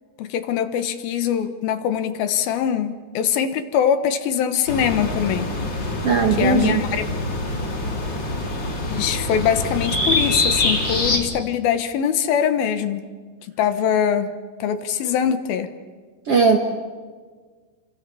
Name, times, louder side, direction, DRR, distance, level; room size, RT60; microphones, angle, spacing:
voice 1, 0.2-5.5 6.4-7.1 8.9-13.0 13.6-14.3 14.6-15.7, left 8 dB, 75° left, 9 dB, 3.0 m, -22 dB
sound 1, 4.7-11.2, left 2 dB, 30° left, 3.8 m, -24 dB
voice 2, 6.0-6.8 16.3-16.6, right 5 dB, 55° right, 4 dB, 1.8 m, -17 dB
30.0 x 25.0 x 7.0 m, 1.5 s
omnidirectional pair, 4.5 m